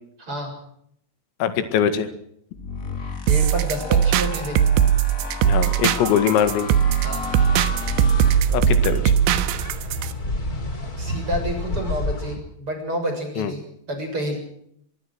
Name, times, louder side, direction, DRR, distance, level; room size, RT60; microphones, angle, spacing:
voice 1, 0.2-0.5 3.3-4.6 7.0-7.3 11.0-14.4, equal, 25° right, 4 dB, 7.5 m, -29 dB
voice 2, 1.4-2.1 5.4-6.7 8.5-9.1 13.4-13.5, left 8 dB, 85° left, 10 dB, 4.6 m, -22 dB
sound 1, 2.5-9.0, left 4 dB, 35° left, 1.2 m, -34 dB
sound 2, 3.3-10.1, right 9 dB, 70° right, 3.1 m, -19 dB
sound 3, 7.2-12.4, left 1 dB, 20° left, 3.4 m, -30 dB
23.0 x 22.5 x 6.2 m, 0.71 s
omnidirectional pair, 5.9 m